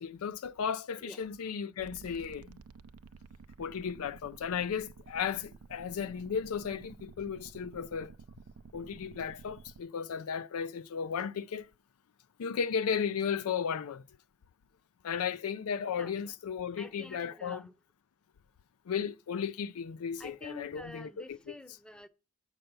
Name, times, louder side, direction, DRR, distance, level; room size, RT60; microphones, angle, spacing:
voice 1, 0.0-2.6 3.6-8.1 8.7-11.7 12.4-14.0 15.0-17.6 18.9-21.1, left 7 dB, 75° left, 0.4 m, -35 dB
sound 1, 1.8-9.8, right 5 dB, 80° right, 0.4 m, -52 dB
voice 2, 15.9-16.4 16.8-17.7 20.2-22.1, left 1 dB, 5° left, 0.6 m, -48 dB
7.8 x 5.6 x 6.7 m
head